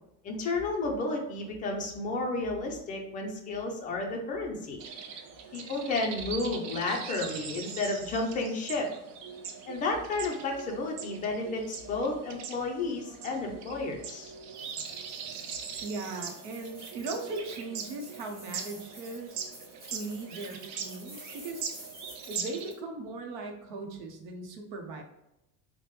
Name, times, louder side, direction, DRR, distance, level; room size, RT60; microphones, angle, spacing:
voice 1, 0.2-4.8 5.5-8.9 9.7-14.3, left 3 dB, 20° left, 1 dB, 0.3 m, -32 dB
sound 1, 4.8-22.7, right 6 dB, 50° right, 0.4 m, -41 dB
sound 2, 14.6-22.8, right 1 dB, 15° right, 0.8 m, -51 dB
voice 2, 15.8-19.5 19.9-21.6 22.3-25.0, right 3 dB, 85° right, 3 dB, 0.8 m, -38 dB
3.3 x 2.1 x 3.0 m, 0.87 s
cardioid pair, 160°, 40 cm